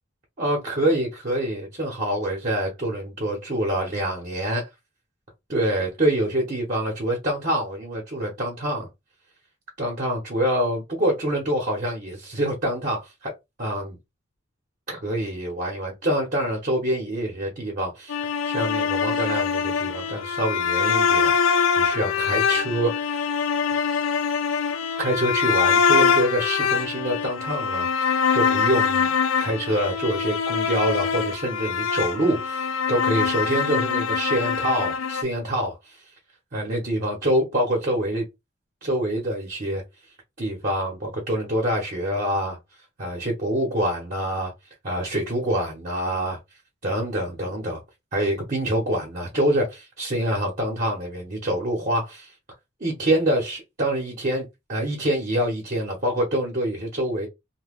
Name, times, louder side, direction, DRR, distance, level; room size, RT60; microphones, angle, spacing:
voice 1, 0.4-4.7 5.5-8.9 9.8-13.3 13.6-14.0 14.9-18.2 18.4-23.3 25.0-29.1 29.4-36.0 36.5-38.3 38.8-39.8 40.4-42.6 43.0-44.5 44.8-46.4 46.8-47.8 48.1-52.3 52.8-57.3, right 1 dB, 45° right, 1.0 m, -26 dB
sound 1, 18.1-35.2, left 6 dB, 80° left, 0.4 m, -23 dB
2.9 x 2.3 x 3.5 m
head